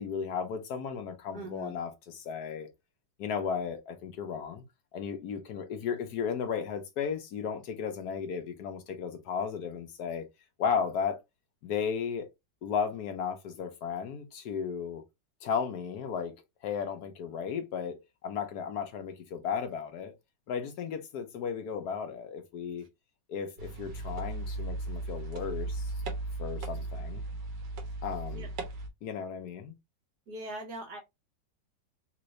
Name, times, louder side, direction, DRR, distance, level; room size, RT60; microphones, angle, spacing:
voice 1, 0.0-2.7 3.2-4.6 4.9-10.3 10.6-11.2 11.6-12.3 12.6-15.0 15.4-16.3 16.6-20.1 20.5-22.8 23.3-25.9 26.4-27.2 28.0-28.5 29.0-29.7, left 6 dB, 65° left, 1.2 m, -34 dB
voice 2, 1.3-1.7 28.3-28.5 30.3-31.0, right 2 dB, 65° right, 1.8 m, -41 dB
sound 1, 23.6-28.9, right 2 dB, 85° right, 1.6 m, -36 dB
3.8 x 2.6 x 3.1 m
omnidirectional pair, 1.9 m